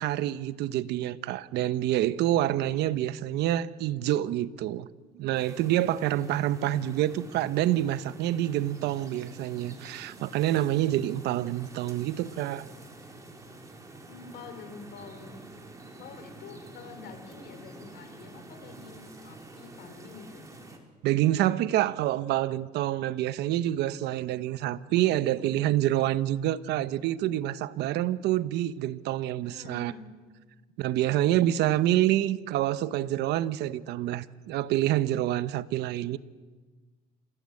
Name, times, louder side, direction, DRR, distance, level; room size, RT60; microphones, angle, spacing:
voice 1, 0.0-4.9 5.2-12.7 21.0-29.9 30.8-36.2, right 13 dB, 85° right, 0.9 m, -27 dB
sound 1, 5.3-20.8, right 2 dB, 20° right, 4.1 m, -48 dB
voice 2, 14.1-15.4 16.0-20.5 29.4-30.1 31.2-31.8, left 5 dB, 75° left, 3.7 m, -47 dB
28.0 x 16.0 x 8.6 m
cardioid pair, 110°, 17 cm